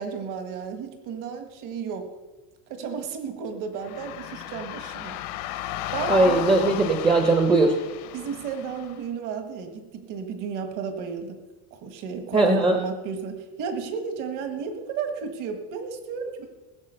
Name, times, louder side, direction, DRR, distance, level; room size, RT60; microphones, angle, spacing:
voice 1, 0.0-2.1 2.7-5.2 5.9-6.5 8.1-11.4 11.7-16.5, right 6 dB, 45° right, 6 dB, 1.6 m, -33 dB
sound 1, 3.8-9.0, left 13 dB, 65° left, 1.0 m, -34 dB
voice 2, 6.1-7.7 12.3-12.8, right 2 dB, 10° right, 4 dB, 0.8 m, -19 dB
20.5 x 7.1 x 5.6 m, 1.2 s
cardioid pair, 175°, 43 cm